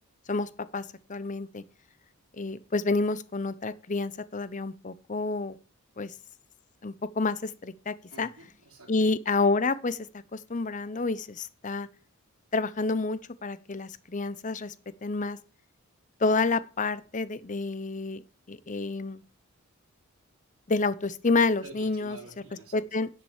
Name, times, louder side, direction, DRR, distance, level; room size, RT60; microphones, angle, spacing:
voice 1, 0.3-0.8 1.1-1.6 2.4-5.6 6.0-6.1 6.8-8.3 8.9-10.0 10.3-11.9 12.5-14.7 15.0-15.4 16.2-18.2 18.5-19.2 20.7-22.2 22.7-23.1, left 3 dB, 35° left, 0.7 m, -29 dB
voice 2, 8.1-8.9 21.6-22.8, right 3 dB, 85° right, 3.8 m, -48 dB
10.5 x 7.6 x 7.3 m
head